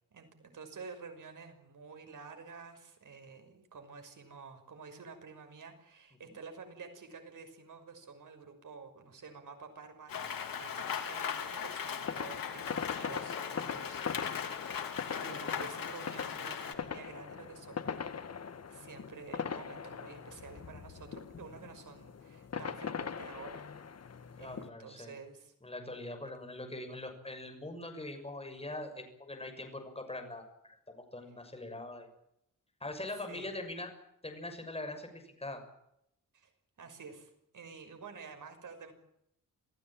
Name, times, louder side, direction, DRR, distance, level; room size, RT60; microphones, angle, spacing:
voice 1, 0.1-18.0 18.7-23.7 24.4-25.5 33.3-33.5 36.3-36.5 36.8-38.9, right 5 dB, 65° right, 6 dB, 6.1 m, -50 dB
Rain, 10.1-16.7, left 7 dB, 85° left, 3.1 m, -39 dB
sound 1, 12.0-24.7, left 6 dB, 50° left, 1.6 m, -41 dB
voice 2, 24.4-25.1 25.6-32.1 32.8-33.9 34.2-35.6, left 2 dB, 20° left, 5 dB, 6.6 m, -42 dB
27.5 x 16.0 x 8.9 m, 0.77 s
wide cardioid pair, 125°, 33 cm